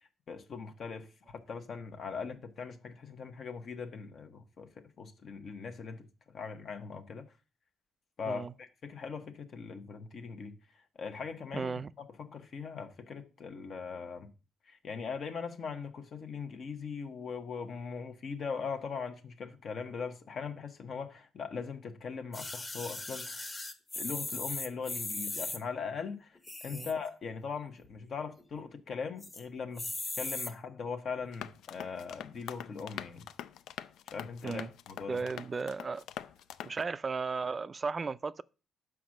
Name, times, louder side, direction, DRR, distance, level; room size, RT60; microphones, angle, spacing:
voice 1, 0.3-7.2 8.2-11.8 12.2-14.3 14.6-23.5 24.0-29.9 30.1-33.3 34.1-35.2, left 5 dB, 55° left, 1.0 m, -40 dB
voice 2, 11.5-11.9 26.7-26.9 34.4-34.7 35.1-36.0 36.6-38.4, right 4 dB, 35° right, 0.3 m, -35 dB
sound 1, 22.3-25.6 26.4-27.1 27.5-27.6 27.8-27.9 28.3-28.7 29.2-29.4 29.8-30.5 31.2-31.3, left 2 dB, 25° left, 1.1 m, -38 dB
sound 2, 31.3-36.8, left 10 dB, 85° left, 0.4 m, -45 dB
5.9 x 4.8 x 6.3 m
cardioid pair, 90°, 0 cm